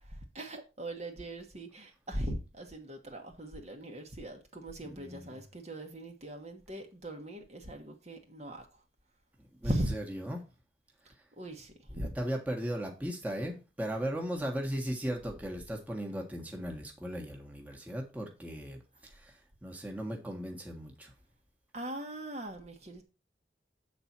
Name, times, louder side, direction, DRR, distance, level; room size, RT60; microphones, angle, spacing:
voice 1, 0.3-8.7 9.6-9.9 11.4-12.1 21.7-23.0, right 1 dB, 40° right, 1.3 m, -39 dB
voice 2, 4.8-5.4 9.6-10.4 11.9-18.8 19.1-19.3 19.6-21.1, equal, 10° right, 1.4 m, -37 dB
8.0 x 4.2 x 6.0 m
head